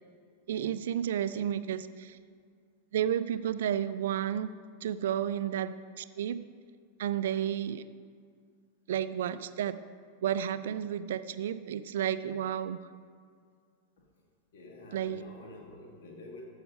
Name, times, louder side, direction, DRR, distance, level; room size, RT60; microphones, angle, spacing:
voice 1, 0.5-2.2 2.9-4.5 4.8-6.5 7.0-7.8 8.9-9.8 10.2-12.8 14.9-15.2, right 10 dB, 60° right, 14 dB, 0.4 m, -32 dB
voice 2, 14.5-16.4, left 2 dB, 55° left, 0 dB, 1.9 m, -48 dB
13.5 x 5.8 x 5.2 m, 2.1 s
figure-of-eight pair, 90°, 0 cm